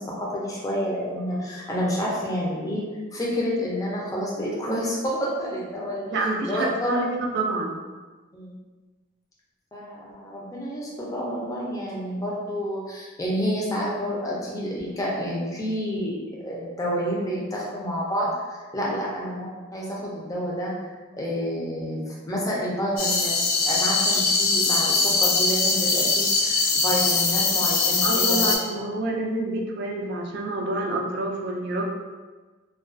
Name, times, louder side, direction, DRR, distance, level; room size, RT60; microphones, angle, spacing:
voice 1, 0.0-2.8 3.1-6.0 6.4-7.0 8.3-8.5 9.7-19.5 19.7-20.7 21.1-23.3 23.6-28.5, equal, 15° left, -5 dB, 0.5 m, -29 dB
voice 2, 6.1-7.8 18.9-19.0 28.0-31.9, right 2 dB, 55° right, 1 dB, 0.3 m, -28 dB
sound 1, 23.0-28.6, left 3 dB, 80° left, 0.4 m, -22 dB
2.3 x 2.2 x 2.4 m, 1.3 s
head